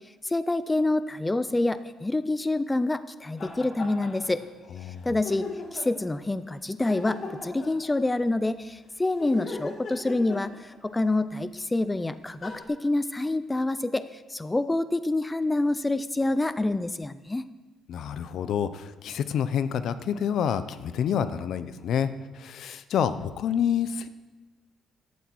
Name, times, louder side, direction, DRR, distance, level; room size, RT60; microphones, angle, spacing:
voice 1, 0.2-4.4 5.0-17.4, left 2 dB, 15° left, 13 dB, 0.5 m, -27 dB
sound 1, 3.4-4.5 4.8-4.9 5.2-6.0 6.9-8.3 9.1-11.0 11.9-12.0 12.4-12.6, left 3 dB, 45° left, 2.2 m, -39 dB
voice 2, 17.9-22.1 22.3-24.1, left 8 dB, 65° left, 12 dB, 0.7 m, -28 dB
16.5 x 11.5 x 4.7 m, 1.2 s
cardioid pair, 110°, 0 cm